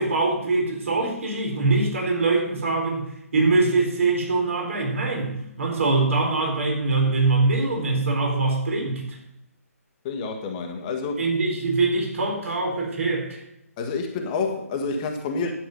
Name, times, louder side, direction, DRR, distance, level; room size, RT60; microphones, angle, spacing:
voice 1, 0.0-9.1 11.2-13.4, right 3 dB, 55° right, 0 dB, 4.3 m, -23 dB
voice 2, 10.0-11.3 13.8-15.5, left 4 dB, 25° left, 3 dB, 1.4 m, -28 dB
11.5 x 8.5 x 5.3 m, 0.82 s
figure-of-eight pair, 135°, 8 cm